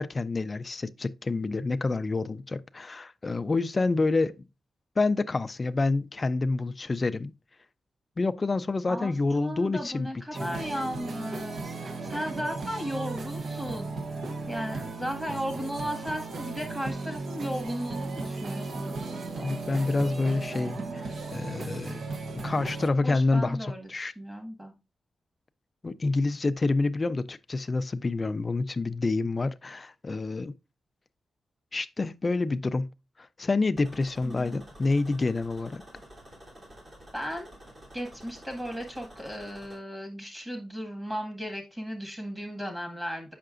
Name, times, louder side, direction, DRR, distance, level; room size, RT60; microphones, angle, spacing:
voice 1, 0.0-4.5 5.0-7.3 8.2-10.1 10.4-10.6 19.4-22.0 22.3-23.6 23.9-24.1 25.8-30.5 31.7-32.9 33.2-35.8, left 3 dB, 30° left, 0.4 m, -28 dB
voice 2, 8.9-13.9 14.5-19.6 23.0-24.7 34.2-34.6 37.1-37.5 37.9-43.3, equal, 15° right, 1.7 m, -36 dB
sound 1, 10.3-22.9, right 3 dB, 60° right, 0.7 m, -36 dB
sound 2, 33.8-39.8, equal, 40° right, 2.6 m, -50 dB
7.6 x 5.8 x 2.5 m
wide cardioid pair, 130°, 0 cm